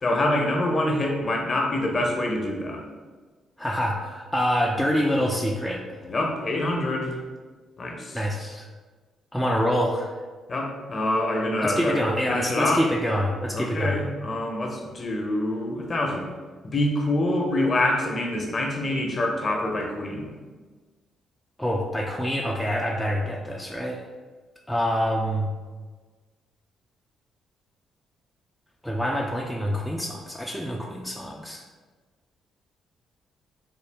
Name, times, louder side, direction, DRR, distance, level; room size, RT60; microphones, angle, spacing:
voice 1, 0.0-2.8 6.1-7.2 7.8-8.2 10.5-12.0 12.3-12.8 13.5-16.3 16.6-20.3, left 1 dB, 40° left, 1 dB, 0.7 m, -26 dB
voice 2, 3.6-5.8 8.1-8.7 9.3-10.1 11.6-14.0 21.6-24.0 24.7-25.5 28.8-31.6, equal, 5° left, -2 dB, 0.3 m, -26 dB
3.7 x 2.3 x 3.3 m, 1.4 s
cardioid pair, 90°, 0 cm